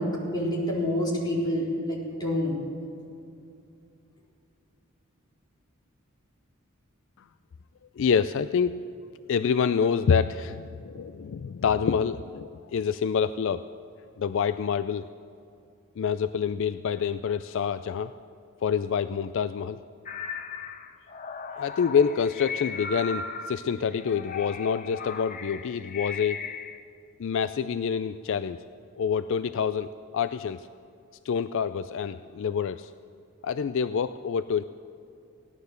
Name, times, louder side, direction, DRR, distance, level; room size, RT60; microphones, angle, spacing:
voice 1, 0.0-2.6, left 1 dB, 20° left, -6 dB, 4.1 m, -27 dB
voice 2, 8.0-8.7 9.3-13.6 14.2-15.1 16.0-18.1 18.6-19.8 21.6-26.4 27.2-28.6 29.0-30.6 31.2-32.9 33.4-34.7, left 6 dB, 60° left, 12 dB, 0.3 m, -27 dB
sound 1, 20.1-26.8, left 5 dB, 40° left, 0.8 m, -37 dB
17.0 x 12.0 x 6.6 m, 2.5 s
head